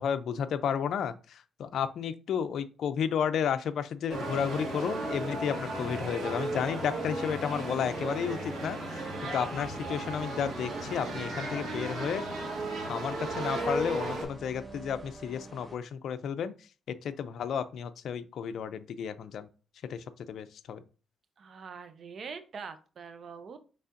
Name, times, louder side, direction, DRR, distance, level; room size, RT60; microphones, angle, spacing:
voice 1, 0.0-12.2 12.9-16.6 16.9-19.5 19.9-20.8, left 8 dB, 65° left, 0.4 m, -32 dB
sound 1, 4.1-14.2, right 2 dB, 75° right, 1.9 m, -35 dB
sound 2, 5.5-15.8, right 1 dB, 10° right, 1.1 m, -46 dB
voice 2, 21.4-23.6, right 5 dB, 50° right, 0.7 m, -43 dB
5.4 x 3.4 x 2.6 m
cardioid pair, 90°, 0 cm